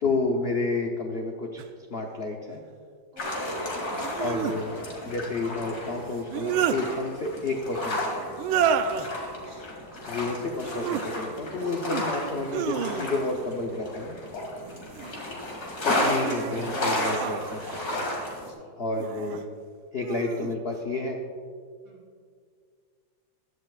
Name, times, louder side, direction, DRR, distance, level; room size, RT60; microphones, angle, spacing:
voice 1, 0.0-1.6 1.9-2.6 4.2-4.7 5.0-8.6 10.1-14.2 15.8-18.1 18.8-19.5 19.9-21.2, left 3 dB, 70° left, 2 dB, 0.5 m, -30 dB
sound 1, 1.6-1.7 4.0-4.6 6.1-6.8 8.3-9.1 10.6-11.0 11.5-12.1 12.5-13.4 14.6-15.2 15.8-17.9 18.9-19.4 20.0-20.5, right 8 dB, 90° right, 1.4 m, -30 dB
voice 2, 3.1-3.6 9.1-9.8 14.6-15.7 18.4-18.8 21.8-22.1, equal, 45° right, -2 dB, 2.1 m, -54 dB
sound 2, 3.2-18.5, left 1 dB, 50° left, 2.7 m, -33 dB
15.5 x 12.0 x 2.4 m, 2.1 s
omnidirectional pair, 2.2 m